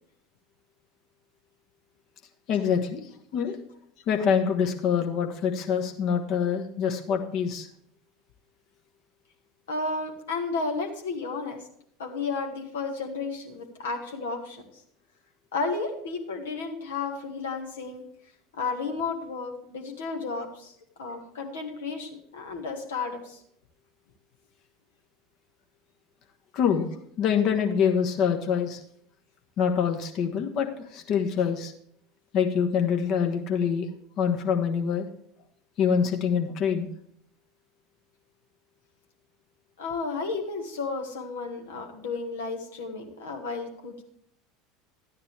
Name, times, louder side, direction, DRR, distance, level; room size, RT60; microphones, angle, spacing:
voice 1, 2.5-3.0 3.3-3.6 4.1-7.7 26.5-26.9 27.2-28.8 29.6-31.7 32.3-33.9 34.2-35.1 35.8-36.9, left 7 dB, 45° left, 4 dB, 1.3 m, -25 dB
voice 2, 9.7-11.6 12.0-14.6 15.5-18.0 18.6-23.4 39.8-44.0, left 4 dB, 70° left, 2 dB, 1.6 m, -33 dB
13.0 x 9.6 x 3.3 m, 0.68 s
figure-of-eight pair, 75°, 0 cm